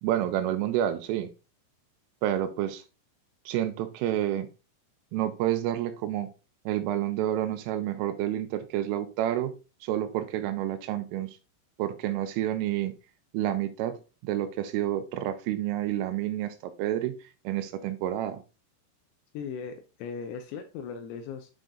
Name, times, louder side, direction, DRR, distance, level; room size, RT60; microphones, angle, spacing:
voice 1, 0.0-1.3 2.2-2.8 3.5-4.5 5.1-6.3 6.7-9.6 9.8-11.4 11.8-12.9 13.3-17.2 17.4-18.4, right 12 dB, 85° right, 3.3 m, -29 dB
voice 2, 19.3-21.5, left 6 dB, 80° left, 2.8 m, -38 dB
8.8 x 3.8 x 3.8 m
omnidirectional pair, 5.8 m